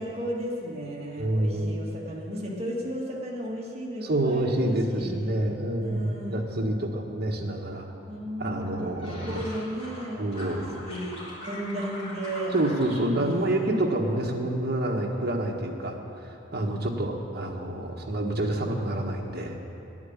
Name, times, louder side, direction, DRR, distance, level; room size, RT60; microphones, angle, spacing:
voice 1, 0.0-5.1 5.8-6.4 8.1-12.5 13.1-13.7 14.3-14.4 16.6-17.1, equal, 30° right, -4 dB, 2.0 m, -35 dB
voice 2, 1.2-1.8 4.0-7.9 8.4-9.4 10.2-10.7 12.5-19.5, right 1 dB, 50° right, 0 dB, 1.4 m, -28 dB
sound 1, 8.6-10.0 10.3-13.0 13.3-14.1 14.4-14.8, left 1 dB, 30° left, 3.3 m, -42 dB
9.5 x 9.4 x 8.7 m, 2.7 s
head